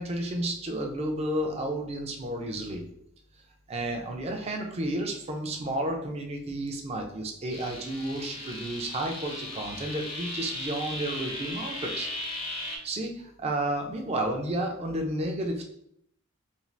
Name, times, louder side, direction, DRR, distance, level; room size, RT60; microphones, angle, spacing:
voice 1, 0.0-2.8 3.7-12.1 12.8-15.6, right 1 dB, 30° right, 2 dB, 0.4 m, -31 dB
sound 1, 7.5-12.8, left 1 dB, 25° left, 0.5 m, -37 dB
2.6 x 2.4 x 3.1 m, 0.72 s
head